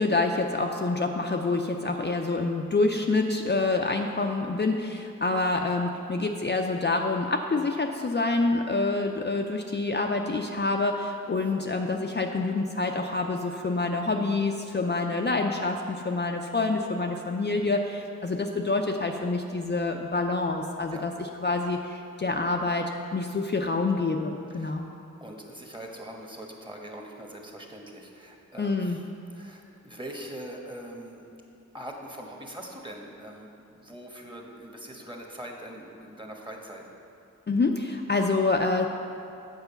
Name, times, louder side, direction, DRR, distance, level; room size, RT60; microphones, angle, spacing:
voice 1, 0.0-24.9 28.6-29.0 37.5-38.9, left 3 dB, 35° left, 2 dB, 0.5 m, -27 dB
voice 2, 25.2-31.2 31.7-36.9, right 1 dB, 15° right, 0 dB, 1.2 m, -42 dB
8.0 x 4.8 x 6.9 m, 2.7 s
wide cardioid pair, 50°, 31 cm